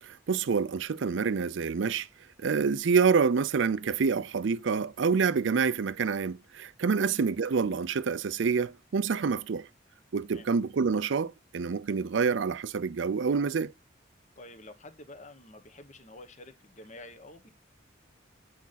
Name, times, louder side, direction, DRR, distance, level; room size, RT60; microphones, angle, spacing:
voice 1, 0.0-2.1 2.4-9.7 10.1-13.7, right 5 dB, 65° right, 0.5 m, -27 dB
voice 2, 14.4-17.5, left 2 dB, 35° left, 1.1 m, -49 dB
8.5 x 5.0 x 4.0 m
head